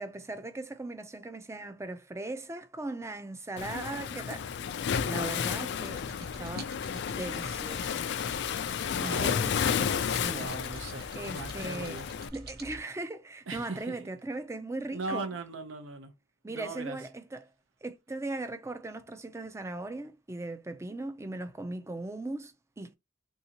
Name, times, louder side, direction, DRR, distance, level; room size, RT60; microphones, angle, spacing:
voice 1, 0.0-4.5 5.0-8.1 9.0-10.5 11.2-12.0 12.3-15.3 16.4-17.5 17.8-23.0, right 2 dB, 15° right, 0.5 m, -39 dB
Waves surf, 3.6-12.3, left 7 dB, 60° left, 0.3 m, -32 dB
sound 1, 5.8-12.8, right 1 dB, 55° right, 1.0 m, -48 dB
voice 2, 8.9-9.4 10.3-12.1 13.5-14.0 14.9-16.1 16.5-17.0, right 3 dB, 75° right, 0.7 m, -39 dB
3.6 x 2.7 x 2.8 m
head